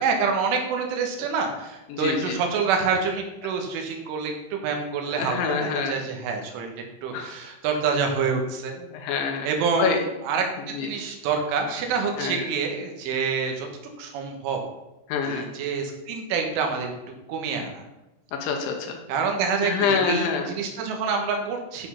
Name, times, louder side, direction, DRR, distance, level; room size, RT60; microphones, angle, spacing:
voice 1, 0.0-6.7 7.0-8.7 9.4-10.4 10.8-13.7 14.0-14.6 15.2-16.9 17.3-17.8 19.1-21.9, right 5 dB, 80° right, 3 dB, 3.9 m, -27 dB
voice 2, 1.9-2.4 5.1-6.0 7.1-7.3 8.8-9.5 9.8-10.0 10.6-10.9 12.2-12.4 15.1-15.5 18.3-19.0 19.6-20.5, left 6 dB, 80° left, 3 dB, 3.3 m, -26 dB
10.5 x 5.3 x 5.7 m, 0.98 s
omnidirectional pair, 5.5 m